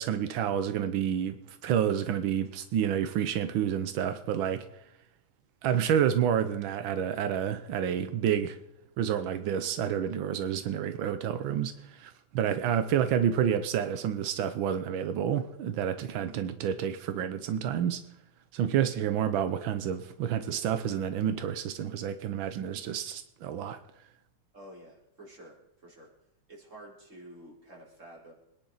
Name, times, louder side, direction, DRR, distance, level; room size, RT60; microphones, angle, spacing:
voice 1, 0.0-4.7 5.6-8.6 9.0-18.0 18.5-23.8, right 9 dB, 90° right, 1.6 m, -29 dB
voice 2, 24.5-26.1 26.5-28.3, right 1 dB, 40° right, 4.8 m, -50 dB
25.5 x 11.0 x 4.0 m
omnidirectional pair, 2.1 m